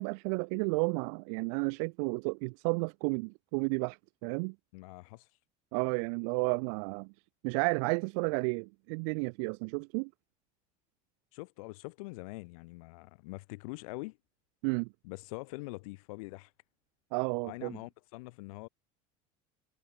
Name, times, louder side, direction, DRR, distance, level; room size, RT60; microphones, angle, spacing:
voice 1, 0.0-4.5 5.7-7.1 7.4-10.1 14.6-14.9 17.1-17.8, right 38 dB, 65° right, 0.5 m, -32 dB
voice 2, 4.7-5.3 11.3-14.2 15.0-16.5 17.4-18.7, left 25 dB, 85° left, 1.6 m, -44 dB
cardioid pair, 170°, 18 cm